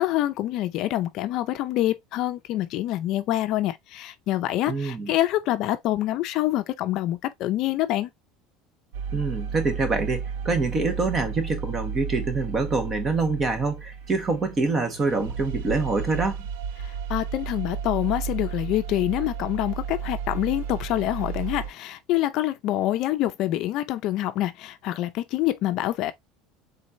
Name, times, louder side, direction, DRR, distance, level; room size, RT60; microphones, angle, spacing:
voice 1, 0.0-8.1 16.8-26.1, left 14 dB, 55° left, 0.5 m, -26 dB
voice 2, 4.7-5.1 9.1-16.5, right 3 dB, 25° right, 1.2 m, -26 dB
sound 1, 8.9-21.7, right 7 dB, 85° right, 0.6 m, -33 dB
4.3 x 3.9 x 2.6 m
supercardioid pair, 130°, 0 cm